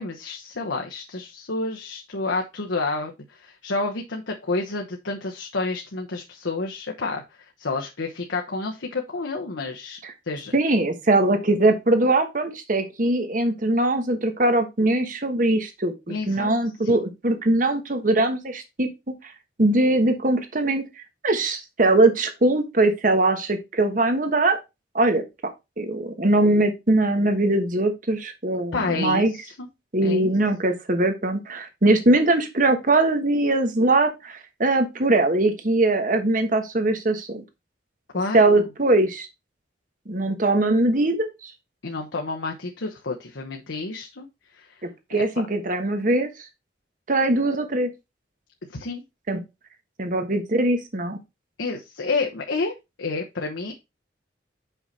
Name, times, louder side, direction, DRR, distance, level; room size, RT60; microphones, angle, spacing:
voice 1, 0.0-7.2 7.6-10.0 10.3-10.5 16.1-16.5 16.8-17.0 28.7-29.7 30.0-30.3 38.1-38.6 41.8-44.3 44.6-44.8 45.1-45.2 48.7-49.0 51.6-53.7, left 3 dB, 85° left, 1 dB, 1.0 m, -29 dB
voice 2, 10.5-18.9 19.6-20.8 21.2-24.6 24.9-25.2 25.8-29.3 29.9-37.4 38.3-39.3 40.1-41.5 45.1-46.3 47.1-47.9 49.3-49.4 50.0-51.2, right 2 dB, 45° right, 7 dB, 1.2 m, -21 dB
5.7 x 5.6 x 4.2 m, 0.24 s
head